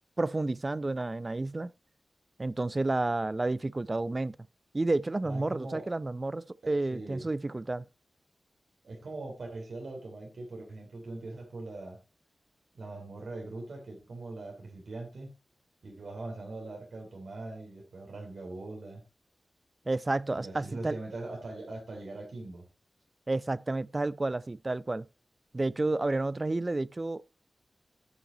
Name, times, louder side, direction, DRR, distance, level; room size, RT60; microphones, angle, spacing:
voice 1, 0.2-1.7 2.4-4.4 4.7-7.8 19.9-21.0 23.3-25.1 25.5-27.2, right 2 dB, 35° right, 0.5 m, -30 dB
voice 2, 5.2-5.9 6.6-7.3 8.8-12.0 12.7-15.3 15.8-19.0 20.3-22.7, right 2 dB, 85° right, 3.2 m, -41 dB
10.5 x 5.8 x 4.1 m
wide cardioid pair, 65°, 0 cm